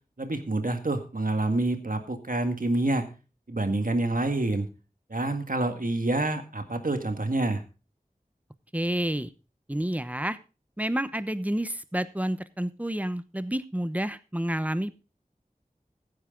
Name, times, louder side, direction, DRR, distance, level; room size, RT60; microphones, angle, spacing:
voice 1, 0.2-3.1 3.5-4.7 5.1-7.6, right 2 dB, 70° right, 7 dB, 1.9 m, -27 dB
voice 2, 8.7-9.3 9.7-10.4 10.8-15.0, right 1 dB, 10° right, 13 dB, 0.9 m, -29 dB
15.5 x 9.7 x 3.8 m, 0.33 s
wide cardioid pair, 40°, 15 cm